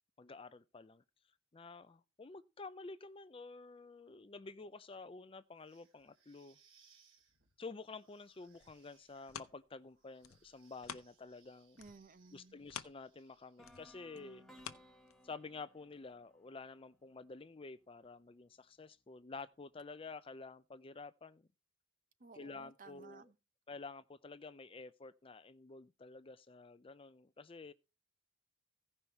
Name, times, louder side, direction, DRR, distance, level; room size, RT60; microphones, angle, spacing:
voice 1, 0.2-1.0 1.5-6.6 7.6-11.8 12.3-14.4 15.2-21.5 22.3-23.3 23.7-27.7, left 3 dB, 25° left, 0.4 m, -50 dB
sound 1, 5.6-13.9, right 6 dB, 65° right, 3.3 m, -72 dB
sound 2, 8.5-11.5 11.8-15.6 16.1-16.2, left 8 dB, 80° left, 0.7 m, -52 dB
voice 2, 11.8-12.6 22.2-23.3, right 4 dB, 40° right, 0.8 m, -57 dB
sound 3, 13.6-17.5, equal, ahead, 1.4 m, -62 dB
16.0 x 5.6 x 4.5 m
head